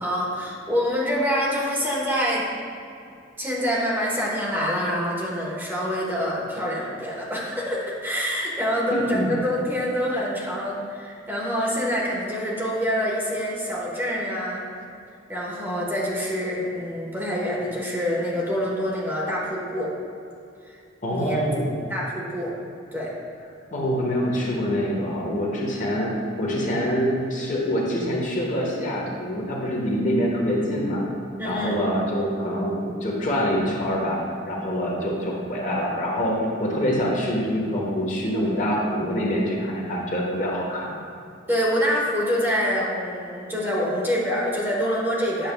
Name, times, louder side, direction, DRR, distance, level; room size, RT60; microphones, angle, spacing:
voice 1, 0.0-2.5 3.4-14.6 15.3-19.9 20.6-20.8 21.1-21.4 21.9-22.5 22.9-23.1 31.4-31.8 41.5-45.5, equal, 10° right, -5 dB, 1.1 m, -26 dB
voice 2, 8.9-9.3 21.0-21.7 23.7-31.1 31.4-41.0, equal, 40° left, -3 dB, 1.0 m, -25 dB
9.0 x 6.4 x 2.2 m, 2.5 s
head